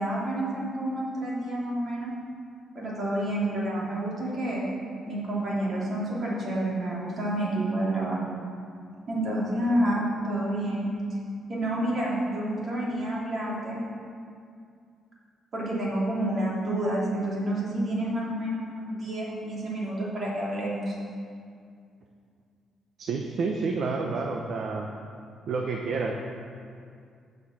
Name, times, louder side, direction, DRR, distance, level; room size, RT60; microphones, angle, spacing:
voice 1, 0.0-2.1 2.7-4.6 5.1-8.2 9.1-10.9 11.5-13.8 15.5-20.9, right 1 dB, 30° right, -6 dB, 3.0 m, -29 dB
voice 2, 23.0-24.9 25.5-26.1, right 4 dB, 50° right, 1 dB, 0.8 m, -29 dB
10.0 x 6.8 x 7.5 m, 2.3 s
cardioid pair, 175°, 0 cm